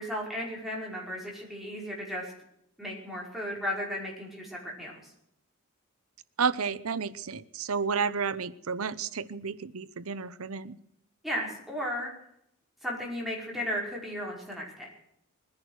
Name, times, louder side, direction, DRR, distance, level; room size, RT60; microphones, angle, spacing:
voice 1, 0.0-2.3 2.8-5.1 11.2-12.1 12.8-14.9, equal, ahead, -3 dB, 5.3 m, -35 dB
voice 2, 6.4-10.8, right 5 dB, 75° right, 16 dB, 0.8 m, -31 dB
21.5 x 10.5 x 6.4 m, 0.74 s
head